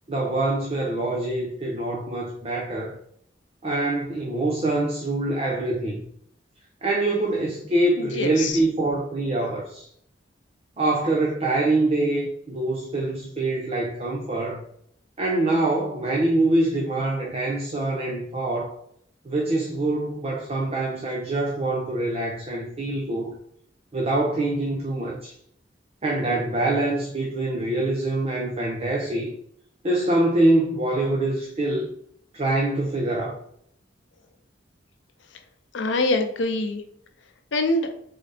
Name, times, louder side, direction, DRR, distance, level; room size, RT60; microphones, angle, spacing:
voice 1, 0.1-3.0 3.6-6.0 6.8-9.9 10.8-14.6 15.2-18.8 19.2-23.3 23.9-25.3 26.0-29.3 29.8-31.9 32.3-33.4, right 2 dB, 35° right, -1 dB, 0.6 m, -24 dB
voice 2, 8.0-8.6 35.7-36.8 37.5-37.9, left 2 dB, 75° left, 6 dB, 0.6 m, -24 dB
4.0 x 3.9 x 3.3 m, 0.69 s
head